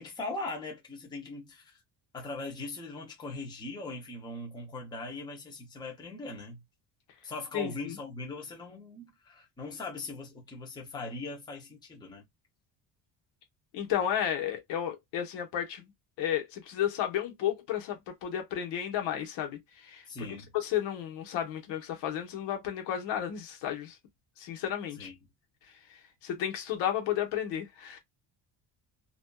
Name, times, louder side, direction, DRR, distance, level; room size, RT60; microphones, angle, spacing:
voice 1, 0.0-1.8 2.1-6.6 7.2-12.2 20.1-20.5 25.0-25.1, left 2 dB, 10° left, 0.5 m, -40 dB
voice 2, 7.5-8.0 13.7-15.9 16.2-24.0 24.4-25.1 26.2-28.0, left 10 dB, 85° left, 1.0 m, -33 dB
2.5 x 2.3 x 2.2 m
cardioid pair, 175°, 41 cm